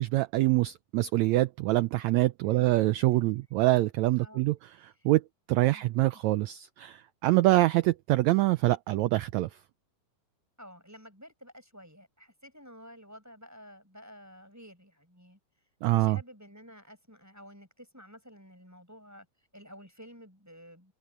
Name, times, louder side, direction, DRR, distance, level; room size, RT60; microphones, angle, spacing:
voice 1, 0.0-5.2 5.5-9.5 15.8-16.2, right 18 dB, 90° right, 1.6 m, -25 dB
voice 2, 2.4-2.8 4.2-4.4 5.7-5.9 10.6-15.4 15.9-19.3 19.5-20.9, equal, 5° right, 5.3 m, -51 dB
omnidirectional pair, 3.8 m